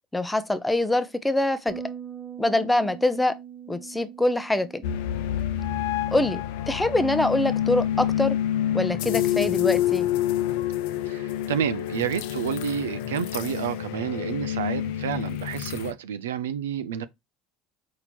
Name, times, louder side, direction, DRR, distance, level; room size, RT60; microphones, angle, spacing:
voice 1, 0.1-1.8 2.4-3.3 3.7-4.8 6.1-6.4 6.7-8.4 8.7-10.1, left 1 dB, 10° left, 0.6 m, -24 dB
sound 1, 1.7-7.9, right 8 dB, 10° right, 1.3 m, -43 dB
sound 2, 4.8-15.9, left 11 dB, 75° left, 0.5 m, -27 dB
voice 2, 11.1-17.1, right 9 dB, 90° right, 0.3 m, -30 dB
4.3 x 2.8 x 4.3 m
hypercardioid pair, 85°, 0 cm